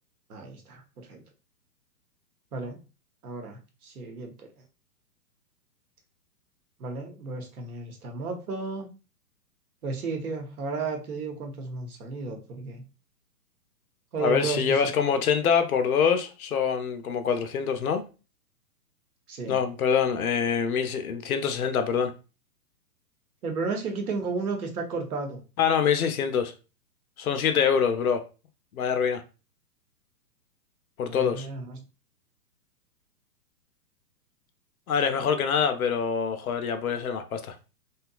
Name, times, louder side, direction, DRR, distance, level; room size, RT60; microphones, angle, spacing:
voice 1, 0.3-1.2 2.5-2.8 3.2-4.5 6.8-8.9 9.8-12.8 14.1-14.9 19.3-19.6 23.4-25.4 31.1-31.8, right 4 dB, 60° right, 0.9 m, -33 dB
voice 2, 14.2-18.0 19.5-22.1 25.6-26.5 27.2-28.2 28.7-29.2 31.0-31.5 34.9-37.5, left 7 dB, 60° left, 0.5 m, -25 dB
2.8 x 2.3 x 2.2 m
figure-of-eight pair, 120°, 49 cm